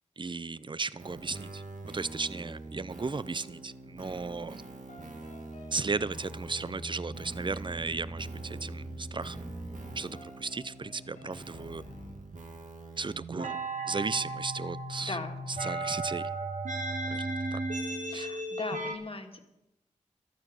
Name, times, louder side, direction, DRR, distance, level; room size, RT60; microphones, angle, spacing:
voice 1, 0.2-1.6 1.9-4.6 5.7-9.4 10.0-11.8 13.0-13.6 13.9-15.2 15.6-16.2 17.1-17.6 18.1-18.3, right 4 dB, 40° right, 0.5 m, -35 dB
sound 1, 1.0-18.9, right 2 dB, 85° right, 1.8 m, -39 dB
sound 2, 4.9-12.2, right 1 dB, 85° left, 2.3 m, -44 dB
voice 2, 15.0-15.4 18.1-19.5, left 3 dB, 45° left, 2.0 m, -38 dB
13.5 x 12.0 x 6.3 m
cardioid pair, 50°, 13 cm